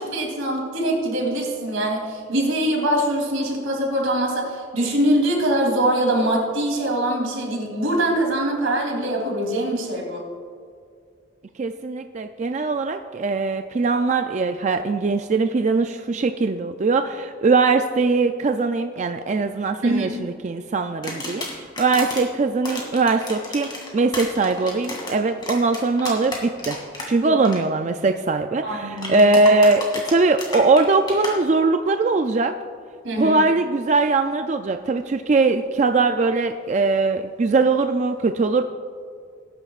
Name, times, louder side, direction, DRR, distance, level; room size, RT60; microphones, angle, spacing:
voice 1, 0.0-10.2 19.8-20.1 27.2-27.3 28.6-29.3 33.0-33.4, right 1 dB, 85° right, -1 dB, 3.1 m, -23 dB
voice 2, 11.6-26.8 27.1-32.5 33.2-38.6, right 3 dB, 35° right, 7 dB, 0.3 m, -21 dB
sound 1, 21.0-22.2 22.6-27.1 27.3-27.6 29.0-31.3, left 2 dB, 20° left, 2.4 m, -32 dB
19.0 x 10.0 x 2.4 m, 2.2 s
head